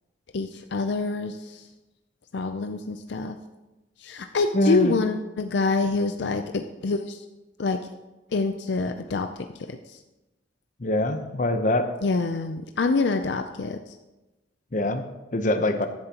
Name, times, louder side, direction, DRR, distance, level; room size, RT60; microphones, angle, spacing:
voice 1, 0.3-1.6 2.3-3.4 4.0-7.2 7.6-7.8 8.3-9.3 9.7-9.8 12.0-13.8, left 3 dB, 70° left, 7 dB, 0.5 m, -26 dB
voice 2, 4.5-4.9 10.8-11.8 14.7-15.0 15.3-15.9, left 1 dB, 45° left, 8 dB, 0.8 m, -23 dB
14.5 x 10.5 x 2.9 m, 1.1 s
head